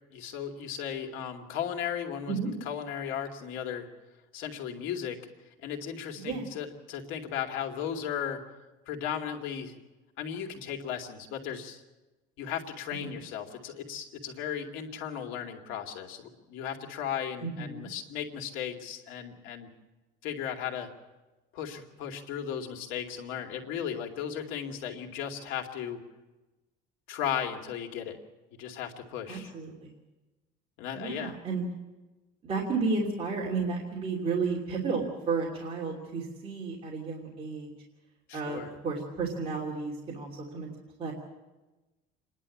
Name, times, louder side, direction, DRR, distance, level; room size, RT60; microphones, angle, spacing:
voice 1, 0.1-2.3 2.7-3.9 4.3-5.2 5.6-8.4 8.9-9.8 10.2-11.8 12.4-19.7 20.2-20.9 21.5-26.0 27.1-28.2 28.6-29.5 30.8-31.3 38.3-38.7, left 8 dB, 75° left, 3 dB, 2.5 m, -36 dB
voice 2, 17.4-17.9 29.3-30.0 30.9-31.6 32.4-37.7 38.3-40.7 41.0-41.1, right 4 dB, 30° right, -3 dB, 3.0 m, -32 dB
27.5 x 11.0 x 8.5 m, 1.1 s
cardioid pair, 160°, 20 cm